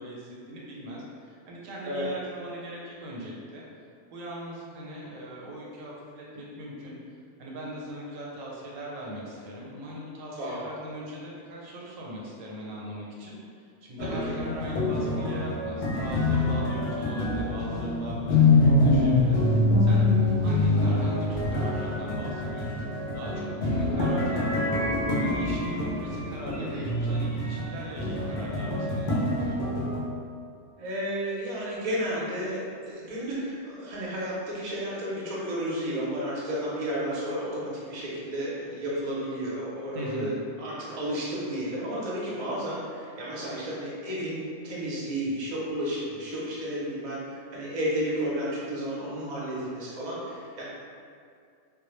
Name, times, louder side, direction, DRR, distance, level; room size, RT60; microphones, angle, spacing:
voice 1, 0.0-3.6 4.1-19.4 19.8-22.8 23.1-24.7 25.1-29.6 39.9-40.3, right 1 dB, 90° right, -4 dB, 1.0 m, -40 dB
sound 1, 14.0-30.0, left 2 dB, 60° left, 0.5 m, -25 dB
voice 2, 14.0-14.4 26.5-26.9 30.8-50.6, equal, 45° right, -6 dB, 0.5 m, -32 dB
2.2 x 2.1 x 3.0 m, 2.3 s
omnidirectional pair, 1.3 m